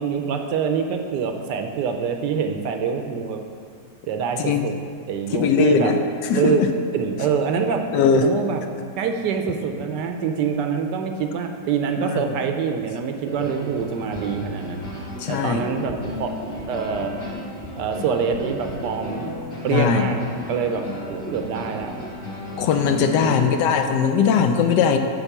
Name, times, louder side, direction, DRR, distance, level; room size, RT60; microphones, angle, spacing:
voice 1, 0.0-3.4 4.1-4.8 5.1-5.9 6.3-6.6 6.9-7.9 8.2-8.6 9.0-14.8 15.3-16.4 16.7-17.2 17.8-19.3 19.6-22.0 23.1-23.6, right 6 dB, 75° right, 5 dB, 1.1 m, -25 dB
voice 2, 5.3-6.7 7.9-8.3 12.0-12.2 15.2-15.6 19.7-20.1 22.6-25.0, left 6 dB, 75° left, 6 dB, 1.1 m, -20 dB
sound 1, 13.2-24.1, left 2 dB, 40° left, 2.1 m, -35 dB
sound 2, 13.2-23.2, right 1 dB, 40° right, 0.6 m, -39 dB
9.0 x 4.0 x 6.0 m, 2.2 s
omnidirectional pair, 2.0 m